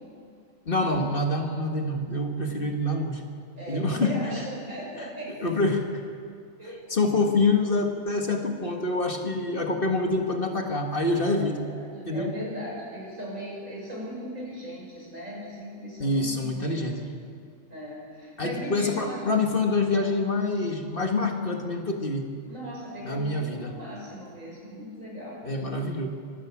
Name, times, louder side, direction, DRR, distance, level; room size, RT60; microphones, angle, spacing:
voice 1, 0.7-3.2 3.7-4.1 5.0-5.1 5.4-5.8 6.9-11.6 12.1-12.3 16.0-17.1 18.4-22.3 23.1-23.7 25.4-26.1, left 2 dB, 45° left, 3 dB, 1.9 m, -26 dB
voice 2, 3.6-5.3 6.6-6.8 11.3-11.5 11.7-16.9 17.7-19.2 22.5-25.4 25.7-25.8, equal, 80° right, -4 dB, 7.1 m, -38 dB
24.5 x 13.0 x 8.6 m, 2.2 s
omnidirectional pair, 1.3 m